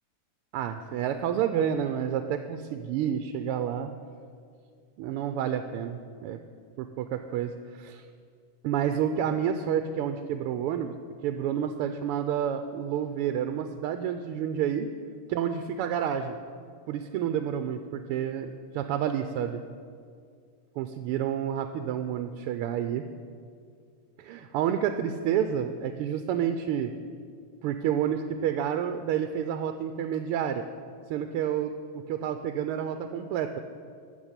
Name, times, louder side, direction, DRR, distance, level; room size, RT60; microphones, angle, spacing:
voice 1, 0.5-3.9 5.0-6.4 7.0-8.0 8.6-10.9 11.2-14.9 15.3-16.3 16.9-19.6 20.8-23.0 24.2-26.9 27.6-30.6 31.1-31.7 32.1-33.6, right 9 dB, 90° right, 8 dB, 1.5 m, -29 dB
13.5 x 5.8 x 8.1 m, 2.2 s
omnidirectional pair, 2.4 m